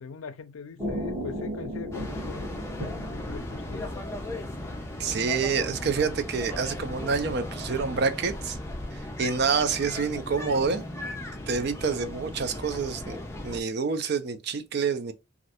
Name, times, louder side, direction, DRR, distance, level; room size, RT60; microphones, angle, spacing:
voice 1, 0.0-2.5 3.0-4.0, left 5 dB, 85° left, 0.4 m, -42 dB
sound 1, 0.8-5.3 5.6-6.0, equal, 10° right, 1.4 m, -36 dB
sound 2, 1.9-13.6, left 1 dB, 15° left, 0.5 m, -37 dB
voice 2, 5.0-8.6 9.2-10.8 11.5-13.2 13.4-15.1, right 5 dB, 50° right, 0.4 m, -27 dB
3.1 x 2.5 x 2.8 m
head